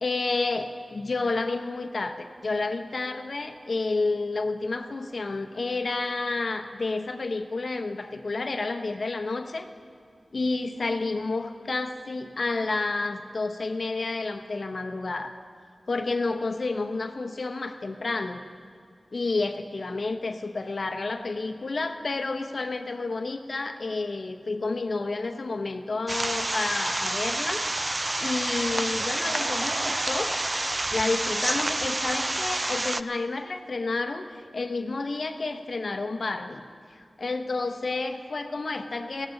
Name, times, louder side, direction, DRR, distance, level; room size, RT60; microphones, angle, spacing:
voice 1, 0.0-9.7 10.3-15.3 15.9-18.4 19.1-27.6 28.2-30.4 30.9-36.6 37.0-39.3, left 3 dB, 65° left, 7 dB, 0.9 m, -30 dB
sound 1, 26.1-33.0, right 2 dB, 30° right, 0.3 m, -28 dB
19.5 x 15.5 x 3.9 m, 2.4 s
wide cardioid pair, 65°, 0 cm